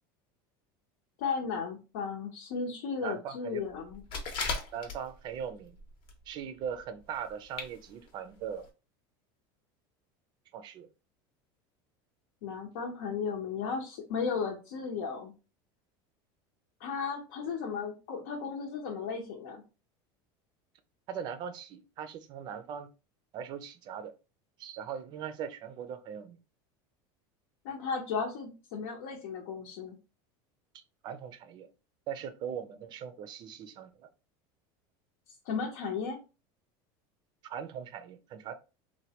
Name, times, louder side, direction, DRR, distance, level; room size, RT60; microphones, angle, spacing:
voice 1, 1.2-4.0 12.4-15.3 16.8-19.6 27.6-30.0 35.4-36.2, left 5 dB, 80° left, 0.8 m, -35 dB
voice 2, 3.0-3.6 4.7-5.8 6.3-8.7 10.5-10.9 21.1-22.9 23.3-24.1 24.6-26.4 30.7-31.7 32.1-34.1 37.5-38.5, right 8 dB, 35° right, 0.4 m, -40 dB
sound 1, 3.9-5.3 5.7-6.2 6.5-6.6 7.2-7.3 7.5-7.7 8.1-8.2 8.6-8.7, left 4 dB, 45° left, 0.8 m, -36 dB
3.2 x 2.2 x 2.8 m
supercardioid pair, 155°, 12 cm